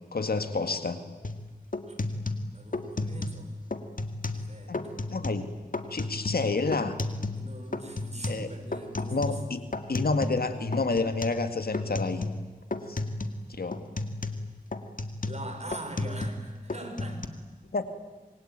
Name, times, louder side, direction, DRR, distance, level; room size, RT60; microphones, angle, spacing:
voice 1, 0.1-1.0 4.7-5.5 5.9-7.0 8.3-8.5 9.0-9.6 9.9-12.2 12.9-13.0 13.5-13.9 17.7-17.8, left 3 dB, 85° left, 9 dB, 2.0 m, -29 dB
sound 1, 1.2-1.4 1.7-3.4 3.7-4.5 4.7-5.4 5.7-7.5 7.7-10.5 10.7-11.4 11.7-12.5 12.7-13.4 13.7-16.4 16.7-17.3, left 2 dB, 60° left, 2.0 m, -33 dB
voice 2, 2.5-3.5 4.3-5.0 7.3-9.4 15.2-17.2, right 2 dB, 45° right, 5 dB, 5.2 m, -42 dB
27.5 x 22.5 x 9.0 m, 1.3 s
wide cardioid pair, 45°, 15 cm